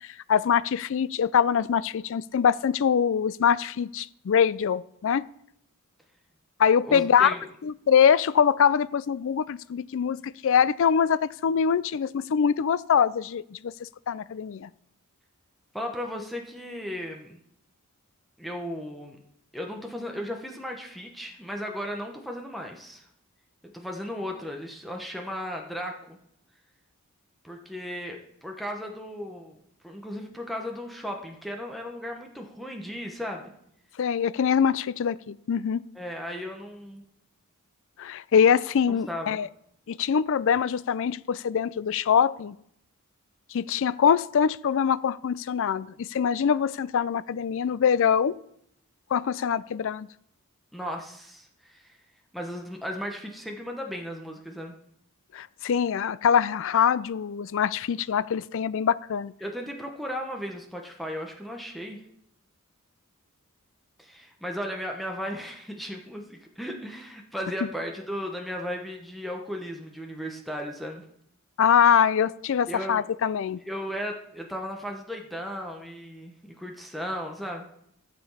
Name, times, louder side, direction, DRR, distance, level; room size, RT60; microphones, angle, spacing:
voice 1, 0.3-5.2 6.6-7.3 7.6-14.7 34.0-35.8 38.0-39.5 39.9-42.6 43.5-48.4 49.1-50.1 55.3-59.3 71.6-73.6, left 7 dB, 60° left, 18 dB, 0.4 m, -23 dB
voice 2, 6.8-7.4 15.7-17.4 18.4-19.2 19.5-23.1 23.6-26.2 27.4-29.6 29.8-33.5 35.9-37.0 39.1-39.4 50.7-52.0 52.3-54.7 59.4-62.0 64.0-71.0 72.7-73.0 73.6-77.7, equal, ahead, 1 dB, 1.0 m, -36 dB
13.5 x 6.9 x 5.6 m, 0.73 s
head